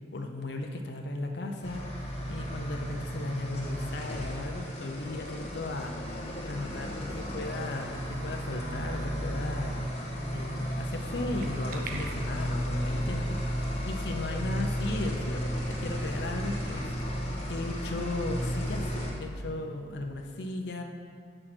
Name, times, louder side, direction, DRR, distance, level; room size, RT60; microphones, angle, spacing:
voice 1, 0.1-9.8 10.3-18.9 19.2-20.8, left 2 dB, 60° left, 3 dB, 0.6 m, -36 dB
sound 1, 1.6-19.1, equal, 35° left, 1.5 m, -34 dB
sound 2, 7.2-7.8 8.5-9.4 10.5-12.9 13.2-13.3 13.8-13.9 14.1-14.2 14.5-15.2 15.5-15.6 16.5-16.6 17.0-18.1 19.0-19.1, right 3 dB, 50° right, 0.6 m, -46 dB
7.6 x 6.3 x 4.3 m, 2.2 s
head